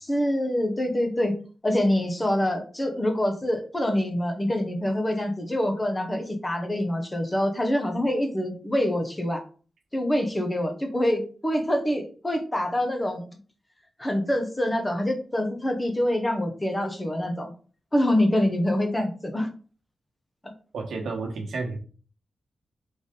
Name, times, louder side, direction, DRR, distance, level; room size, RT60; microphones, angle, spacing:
voice 1, 0.1-1.3 1.6-9.4 9.9-13.3 14.0-17.5 17.9-19.5 20.4-20.5, left 1 dB, 15° left, 4 dB, 1.0 m, -25 dB
voice 2, 20.7-21.8, right 3 dB, 85° right, 1 dB, 1.1 m, -31 dB
4.1 x 3.4 x 3.7 m, 0.39 s
wide cardioid pair, 100°, 0 cm